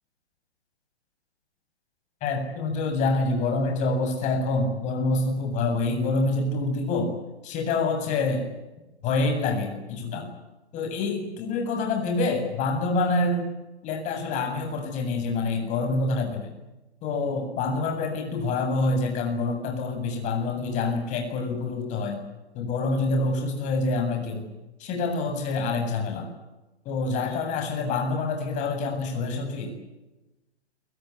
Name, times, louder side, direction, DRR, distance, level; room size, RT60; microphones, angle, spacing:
voice 1, 2.2-7.1 7.4-8.4 9.0-10.3 10.7-13.5 13.8-16.5 17.0-22.2 22.5-24.5 24.8-26.3 26.8-29.7, left 3 dB, 20° left, 4 dB, 7.9 m, -26 dB
28.0 x 24.0 x 8.4 m, 1.0 s
figure-of-eight pair, 140°, 34 cm